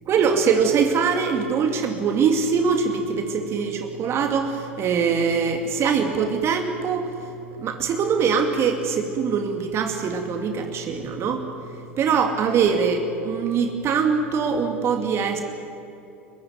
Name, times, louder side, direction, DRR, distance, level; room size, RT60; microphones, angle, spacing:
voice 1, 0.1-15.4, right 6 dB, 40° right, 5 dB, 2.6 m, -23 dB
29.5 x 16.0 x 9.7 m, 2.9 s
figure-of-eight pair, 80°, 7 cm